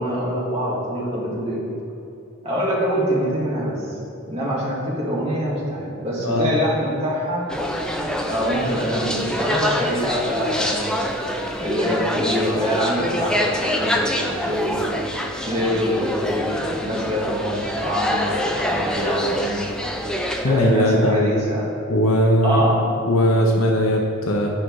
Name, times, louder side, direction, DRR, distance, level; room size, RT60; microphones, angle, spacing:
voice 1, 0.0-1.6 2.4-4.0 4.3-7.4 8.2-11.1 11.6-14.8 15.4-19.7 20.4-21.7 22.4-22.7, equal, 30° right, -6 dB, 2.1 m, -25 dB
voice 2, 6.2-6.6 20.4-21.3 21.9-24.5, equal, 80° left, 0 dB, 0.9 m, -19 dB
sound 1, 7.5-20.5, equal, 5° left, 0.4 m, -25 dB
11.5 x 4.9 x 4.7 m, 2.7 s
head